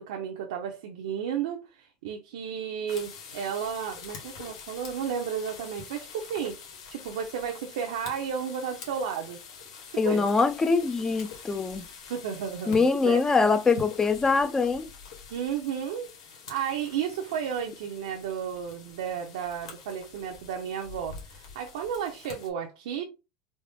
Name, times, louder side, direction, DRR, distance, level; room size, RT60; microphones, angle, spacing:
voice 1, 0.0-9.4 9.9-10.3 11.8-13.2 15.3-23.0, right 8 dB, 90° right, 0.6 m, -33 dB
sound 1, 2.9-22.5, left 6 dB, 85° left, 1.5 m, -46 dB
voice 2, 10.0-11.8 12.7-14.9, left 4 dB, 20° left, 0.4 m, -23 dB
4.1 x 2.1 x 3.5 m
supercardioid pair, 125°, 3 cm